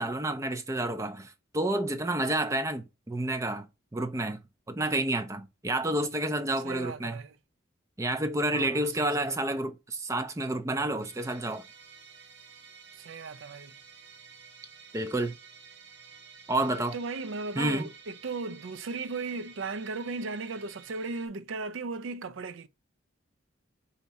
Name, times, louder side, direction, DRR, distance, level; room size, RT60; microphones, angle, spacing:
voice 1, 0.0-3.7 3.9-4.4 4.7-7.2 8.0-11.6 14.9-15.3 16.5-16.9 17.6-17.9, right 1 dB, 15° right, 0.4 m, -29 dB
voice 2, 6.6-7.4 8.5-9.4 13.0-13.7 16.8-22.7, right 3 dB, 75° right, 0.5 m, -36 dB
Musical instrument, 11.0-21.3, right 6 dB, 55° right, 1.0 m, -52 dB
4.6 x 2.8 x 4.0 m
head